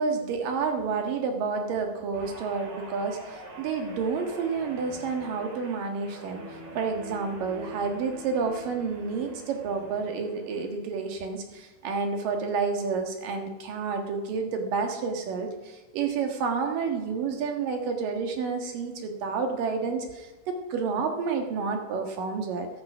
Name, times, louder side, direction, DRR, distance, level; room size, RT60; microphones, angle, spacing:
voice 1, 0.0-6.4 6.8-22.7, right 5 dB, 75° right, 4 dB, 3.4 m, -30 dB
Guitar, 2.1-10.7 11.1-11.4, right 1 dB, 35° right, 2.8 m, -44 dB
13.5 x 12.5 x 6.1 m, 1.2 s
omnidirectional pair, 3.9 m